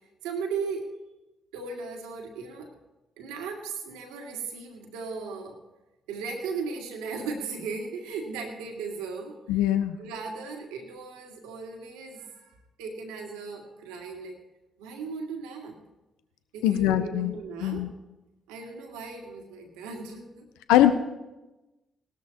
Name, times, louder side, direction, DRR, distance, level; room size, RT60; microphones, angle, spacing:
voice 1, 0.2-0.9 1.5-2.7 3.2-5.6 6.1-9.7 10.0-14.4 14.8-15.8 16.5-17.9 18.5-20.5, right 4 dB, 80° right, 2 dB, 2.1 m, -37 dB
voice 2, 9.5-10.0 16.6-17.3 17.6-17.9 20.7-20.9, left 12 dB, 80° left, 10 dB, 0.7 m, -21 dB
18.5 x 13.0 x 3.0 m, 1.0 s
hypercardioid pair, 40°, 0 cm